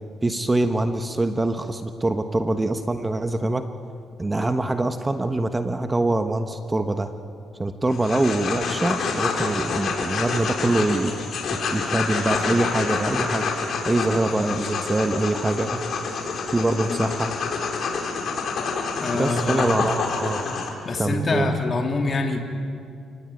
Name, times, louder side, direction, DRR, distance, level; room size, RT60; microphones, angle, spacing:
voice 1, 0.2-3.6 4.2-7.1 7.6-11.1 11.7-13.5 13.8-15.8 16.5-17.3 19.1-20.4 21.0-21.5, right 2 dB, 20° right, 7 dB, 1.4 m, -24 dB
sound 1, 7.9-20.7, left 5 dB, 60° left, 4.6 m, -27 dB
voice 2, 19.0-19.7 20.8-22.4, left 3 dB, 40° left, 2 dB, 3.1 m, -25 dB
29.0 x 18.5 x 9.4 m, 2.4 s
cardioid pair, 90°, 0 cm